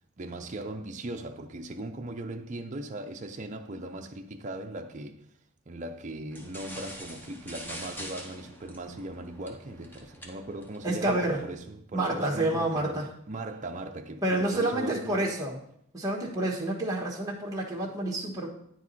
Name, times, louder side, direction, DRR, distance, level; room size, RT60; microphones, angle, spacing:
voice 1, 0.2-5.2 5.7-15.3, right 2 dB, 35° right, 0.5 m, -39 dB
sound 1, 6.3-11.6, equal, 10° left, 0.8 m, -45 dB
voice 2, 10.8-11.4 11.9-13.1 14.2-15.6 15.9-18.5, right 1 dB, 15° right, 1.3 m, -28 dB
9.4 x 4.7 x 4.1 m
head